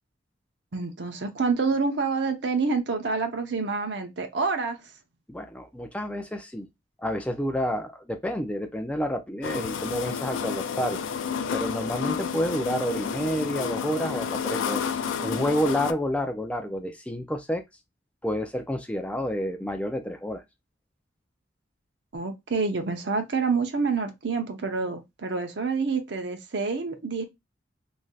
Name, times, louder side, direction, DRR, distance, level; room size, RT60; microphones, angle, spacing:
voice 1, 0.7-4.8 22.1-27.2, right 4 dB, 60° right, 0.6 m, -27 dB
voice 2, 5.3-6.7 7.0-11.0 11.5-14.9 15.2-17.6 18.2-20.4, equal, 5° left, 0.3 m, -29 dB
sound 1, 9.4-15.9, left 7 dB, 80° left, 0.4 m, -30 dB
3.2 x 2.6 x 2.3 m
head